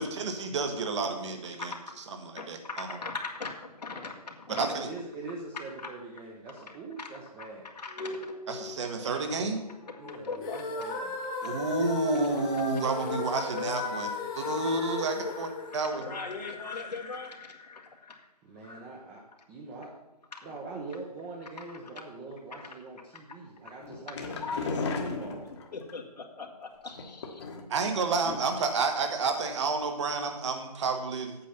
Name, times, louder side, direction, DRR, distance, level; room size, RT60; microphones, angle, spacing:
voice 1, 0.0-1.7 2.5-2.9 4.5-4.9 8.5-9.6 11.4-14.1 14.3-15.5 15.7-16.0 27.7-31.4, right 4 dB, 45° right, 6 dB, 1.5 m, -30 dB
voice 2, 2.1-4.7 6.6-6.7 7.0-7.1 7.4-7.5 7.7-11.7 13.0-18.3 18.6-18.9 20.3-20.6 21.7-21.8 22.6-22.7 23.6-23.7 24.4-25.0 25.7-27.5, left 4 dB, 80° left, 1 dB, 1.9 m, -41 dB
voice 3, 4.5-7.7 10.0-11.1 18.4-19.9 20.4-24.6 25.0-25.5, right 3 dB, 15° right, 0 dB, 0.9 m, -43 dB
sound 1, 10.4-16.5, left 4 dB, 10° left, 0.3 m, -36 dB
sound 2, 23.8-25.9 26.9-27.8 28.2-28.7 29.0-29.1 29.4-29.5, left 3 dB, 45° left, 1.4 m, -35 dB
8.5 x 7.5 x 5.8 m, 0.99 s
hypercardioid pair, 155°, 21 cm